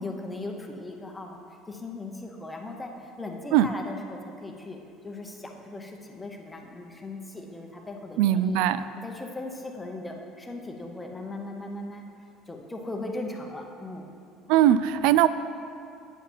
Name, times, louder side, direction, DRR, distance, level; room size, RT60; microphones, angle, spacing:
voice 1, 0.0-1.4 1.7-2.9 3.2-4.8 5.0-8.6 9.0-12.0 12.5-14.1, left 2 dB, 10° left, 2 dB, 0.7 m, -38 dB
voice 2, 8.2-8.8 14.5-15.3, right 11 dB, 75° right, 14 dB, 0.3 m, -20 dB
8.8 x 4.8 x 7.1 m, 2.4 s
cardioid pair, 155°, 0 cm